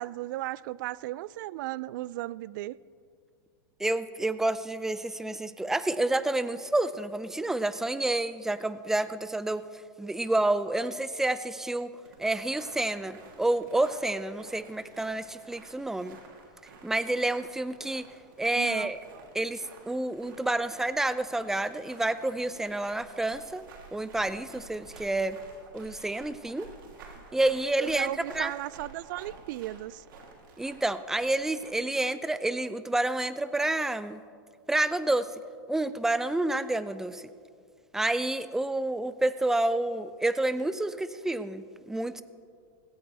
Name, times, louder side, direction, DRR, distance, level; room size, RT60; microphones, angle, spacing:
voice 1, 0.0-2.8 18.6-19.2 27.2-27.3 27.8-30.0, right 16 dB, 65° right, 21 dB, 0.4 m, -36 dB
voice 2, 3.8-9.6 10.0-11.9 12.2-16.2 16.8-18.1 18.4-19.0 19.3-23.7 23.9-25.4 25.7-26.7 27.3-28.5 30.6-34.2 34.7-35.3 35.7-37.2 37.9-42.2, right 2 dB, 5° right, 14 dB, 0.4 m, -29 dB
sound 1, 12.0-31.7, right 4 dB, 85° right, 3.1 m, -51 dB
17.5 x 16.0 x 3.4 m, 2.2 s
supercardioid pair, 135°, 11 cm